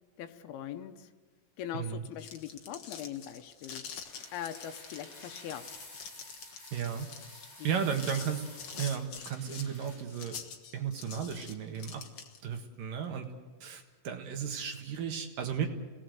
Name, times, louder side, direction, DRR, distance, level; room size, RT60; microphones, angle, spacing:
voice 1, 0.2-1.1 1.6-5.9 7.6-7.7, left 10 dB, 75° left, 9 dB, 2.8 m, -42 dB
sound 1, 2.0-12.6, left 6 dB, 55° left, 1.6 m, -46 dB
sound 2, 3.9-10.0, left 2 dB, 35° left, 8.8 m, -51 dB
voice 2, 6.7-7.1 7.6-8.5 8.8-10.4 10.7-12.0 12.4-13.3 13.6-15.7, right 7 dB, 65° right, 4 dB, 3.0 m, -34 dB
29.0 x 18.5 x 7.9 m, 1.4 s
omnidirectional pair, 4.6 m